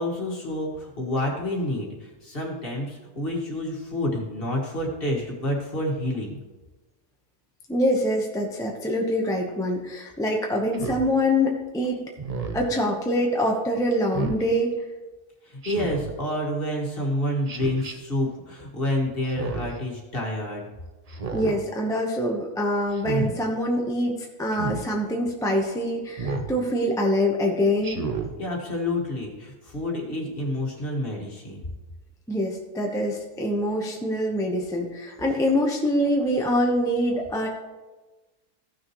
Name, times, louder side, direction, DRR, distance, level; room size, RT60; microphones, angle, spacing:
voice 1, 0.0-6.4 15.4-20.6 28.4-31.7, left 1 dB, 35° left, -1 dB, 2.0 m, -28 dB
voice 2, 7.7-12.0 12.5-14.7 21.3-28.0 32.3-37.5, left 1 dB, 5° left, -1 dB, 0.7 m, -25 dB
Speech synthesizer, 10.7-11.1 12.2-12.7 14.1-14.4 15.6-16.1 17.5-17.9 19.2-19.8 21.1-21.6 22.9-23.3 24.5-24.8 26.2-26.5 27.8-28.3, right 3 dB, 40° right, 0.5 m, -31 dB
15.5 x 6.3 x 3.1 m, 1.2 s
omnidirectional pair, 1.7 m